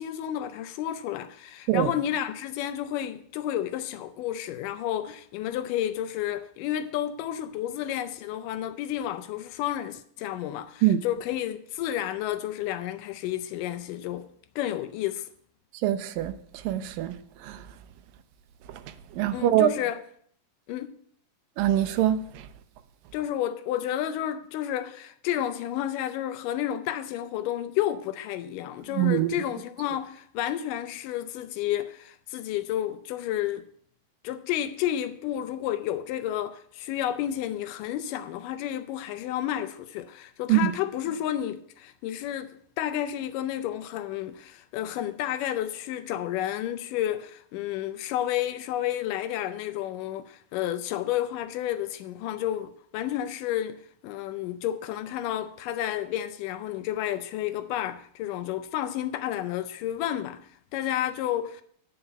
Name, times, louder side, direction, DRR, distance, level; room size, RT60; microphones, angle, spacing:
voice 1, 0.0-14.3 14.6-15.3 19.3-20.0 20.7-20.9 23.1-33.7 34.2-61.6, left 11 dB, 80° left, 2.0 m, -31 dB
voice 2, 15.8-17.1 17.4-17.6 19.1-19.7 21.6-22.5 28.9-29.4 40.5-40.7, right 12 dB, 85° right, 2.3 m, -24 dB
9.6 x 5.6 x 6.8 m
omnidirectional pair, 4.0 m